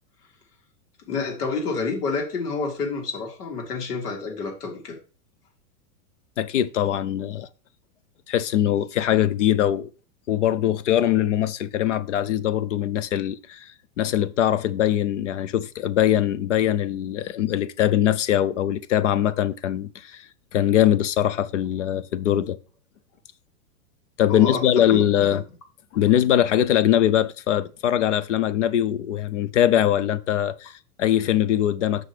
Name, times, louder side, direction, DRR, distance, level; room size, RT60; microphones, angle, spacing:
voice 1, 1.1-4.9 24.3-25.0, left 4 dB, 75° left, 2.9 m, -28 dB
voice 2, 6.4-7.5 8.3-9.9 10.3-22.6 24.2-25.4 25.9-32.0, left 11 dB, 50° left, 0.5 m, -22 dB
7.6 x 6.2 x 3.3 m
supercardioid pair, 175°, 47 cm